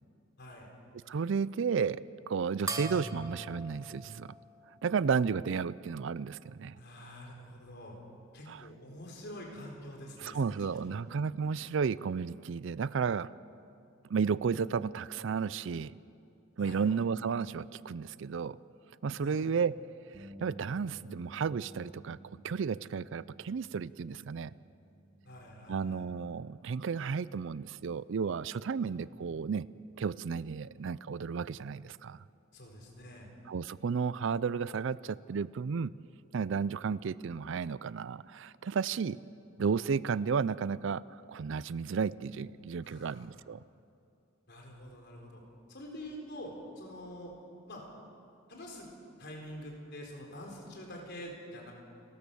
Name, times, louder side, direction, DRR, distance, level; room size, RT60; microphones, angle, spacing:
voice 1, 0.4-0.7 6.7-8.0 8.3-11.0 16.6-16.9 19.2-19.5 25.2-26.0 28.8-29.3 32.5-33.3 42.8-43.3 44.5-45.4 45.7-47.3 47.7-47.8 48.5-48.9 49.2-51.7, equal, 55° left, 1 dB, 4.2 m, -46 dB
voice 2, 1.1-4.3 4.8-6.8 8.5-8.6 10.2-13.3 14.1-15.9 16.6-18.6 19.0-19.7 20.4-24.5 25.7-29.7 30.0-32.2 33.5-35.9 36.3-39.2 39.6-41.0 41.3-43.6, right 6 dB, 65° right, 19 dB, 0.4 m, -33 dB
sound 1, 2.7-5.5, right 2 dB, 15° right, 1.1 m, -42 dB
Bass guitar, 20.1-26.4, right 1 dB, 45° right, 2.9 m, -54 dB
29.5 x 13.5 x 6.9 m, 2.5 s
head